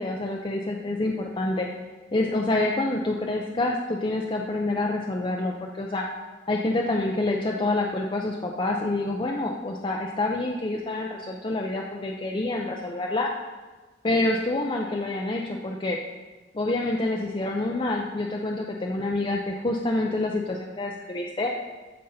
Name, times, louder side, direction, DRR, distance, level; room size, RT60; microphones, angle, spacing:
voice 1, 0.0-1.7 2.1-6.1 6.5-13.3 14.0-16.0 16.5-21.5, left 2 dB, 30° left, 0 dB, 0.5 m, -27 dB
14.5 x 5.3 x 4.1 m, 1.3 s
head